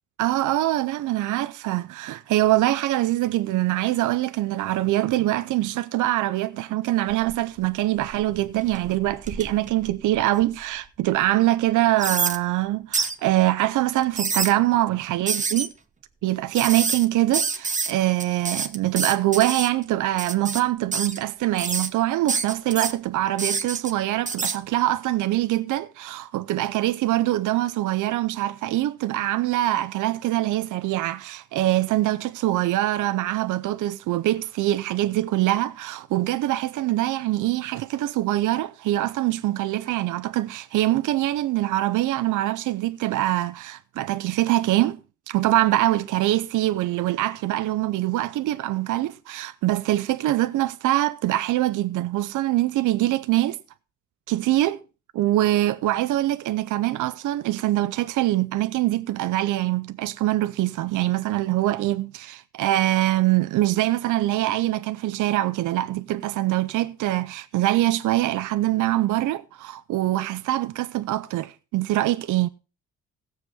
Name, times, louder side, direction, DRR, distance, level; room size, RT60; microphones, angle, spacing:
voice 1, 0.2-15.7 16.2-45.0 45.3-53.6 54.3-54.8 55.1-72.5, right 15 dB, 80° right, 0.7 m, -24 dB
sound 1, 7.1-7.6 8.0-10.7 11.2-11.3 12.0-12.4 12.9-13.1 14.0-14.5 15.3-15.7 16.5-17.0 17.3-17.9 18.2-19.7 20.2-20.6 20.9-21.2 21.6-21.9 22.3-22.9 23.4-23.9 24.3-24.6, right 4 dB, 25° right, 1.1 m, -27 dB
16.5 x 7.4 x 3.6 m
cardioid pair, 90°, 30 cm